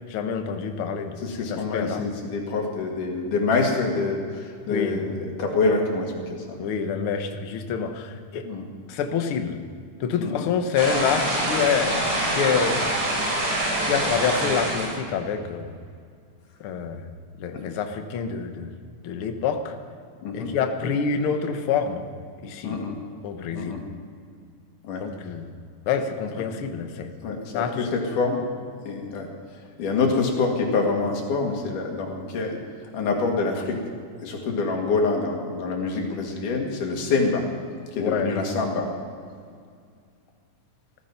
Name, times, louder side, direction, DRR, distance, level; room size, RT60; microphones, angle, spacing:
voice 1, 0.1-1.2 1.5-2.0 4.7-5.0 6.6-8.5 8.9-9.6 10.0-12.0 12.3-12.9 13.8-15.7 16.6-17.1 17.4-18.7 19.0-19.7 20.3-22.0 22.4-22.8 23.2-23.8 25.0-25.5 25.9-27.1 27.5-27.9 38.0-38.4, left 6 dB, 60° left, 6 dB, 1.6 m, -27 dB
voice 2, 1.2-6.6 8.4-8.6 10.2-10.5 17.5-17.6 20.2-20.5 22.6-23.0 23.5-23.8 24.8-25.1 27.2-28.5 28.8-33.8 34.2-37.5 37.9-38.9, left 3 dB, 75° left, 1 dB, 3.7 m, -26 dB
sound 1, 10.8-14.9, right 1 dB, 70° right, 5.2 m, -25 dB
16.0 x 14.0 x 5.9 m, 2.2 s
omnidirectional pair, 3.6 m